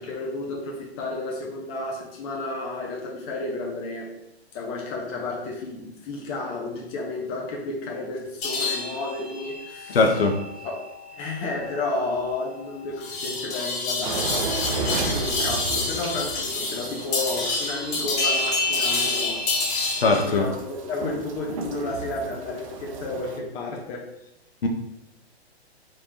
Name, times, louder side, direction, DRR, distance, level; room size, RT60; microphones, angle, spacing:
voice 1, 0.0-4.1 4.5-10.2 10.6-10.8 11.1-19.4 20.1-24.1, left 2 dB, 15° left, -2 dB, 0.6 m, -32 dB
sound 1, 8.4-20.2, left 3 dB, 35° left, 1.5 m, -28 dB
voice 2, 9.9-10.4 20.0-20.5 24.6-24.7, left 3 dB, 60° left, 4 dB, 0.8 m, -20 dB
sound 2, 14.0-23.4, right 4 dB, 30° right, 0.5 m, -34 dB
3.7 x 3.3 x 4.3 m, 0.87 s
figure-of-eight pair, 120°, 33 cm